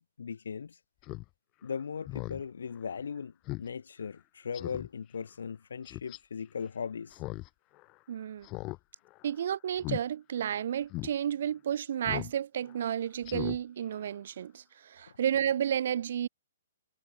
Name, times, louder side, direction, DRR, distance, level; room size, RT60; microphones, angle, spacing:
voice 1, 0.2-0.8 1.6-3.3 3.6-7.2, left 6 dB, 85° left, 3.7 m, -38 dB
Speech synthesizer, 1.0-1.2 1.6-1.7 2.0-2.4 2.8-2.9 3.5-3.7 4.0-4.1 4.5-4.9 5.8-6.2 7.1-7.5 7.8-7.9 8.4-8.8 9.1-9.3 9.7-10.0 10.4-10.5 10.9-11.1 12.0-12.3 12.7-12.8 13.2-13.6 13.9-14.0, left 22 dB, 20° left, 1.1 m, -38 dB
voice 2, 8.1-8.5 9.2-16.3, right 9 dB, 45° right, 0.4 m, -32 dB
hypercardioid pair, 175°, 0 cm